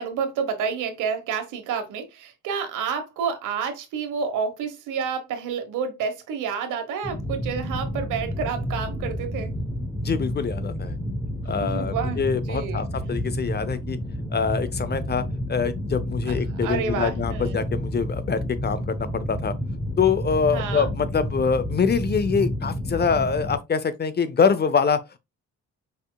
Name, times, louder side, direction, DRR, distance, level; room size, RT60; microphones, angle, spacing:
voice 1, 0.0-9.5 11.6-12.8 16.5-17.6 20.5-20.9, right 6 dB, 90° right, 1.3 m, -29 dB
sound 1, 7.0-23.6, equal, 5° left, 1.0 m, -30 dB
voice 2, 10.0-11.0 11.5-14.0 14.3-15.2 15.5-19.5 20.0-25.2, left 6 dB, 35° left, 0.7 m, -24 dB
5.1 x 4.4 x 2.4 m
cardioid pair, 90°, 30 cm